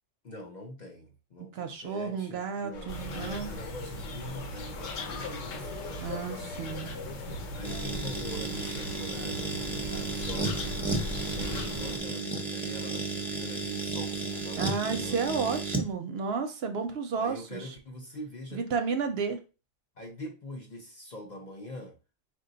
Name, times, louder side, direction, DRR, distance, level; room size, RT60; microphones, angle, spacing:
voice 1, 0.2-6.8 7.5-10.6 11.3-15.3 17.2-18.6 19.1-19.2 20.0-22.0, left 1 dB, 50° left, 0.6 m, -44 dB
voice 2, 1.5-3.5 6.0-6.9 14.6-17.7 18.5-19.4, right 5 dB, 65° right, 0.7 m, -32 dB
sound 1, 2.7-7.9, left 4 dB, 70° left, 0.9 m, -42 dB
sound 2, 2.9-12.0, left 1 dB, 90° left, 1.1 m, -38 dB
sound 3, 7.6-15.9, right 3 dB, ahead, 0.6 m, -33 dB
4.7 x 2.2 x 3.8 m
omnidirectional pair, 1.3 m